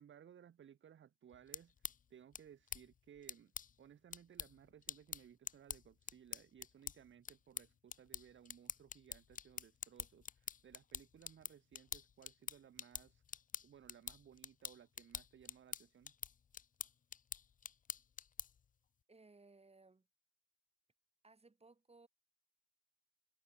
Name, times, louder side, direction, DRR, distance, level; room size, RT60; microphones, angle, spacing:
voice 1, 0.0-3.5 3.8-13.2 13.6-16.1, right 9 dB, 40° right, 0.8 m, -61 dB
sound 1, 1.3-18.7, left 7 dB, 30° left, 0.4 m, -49 dB
voice 2, 19.1-20.1 21.2-22.1, right 3 dB, 20° right, 3.4 m, -63 dB
cardioid pair, 90°, 30 cm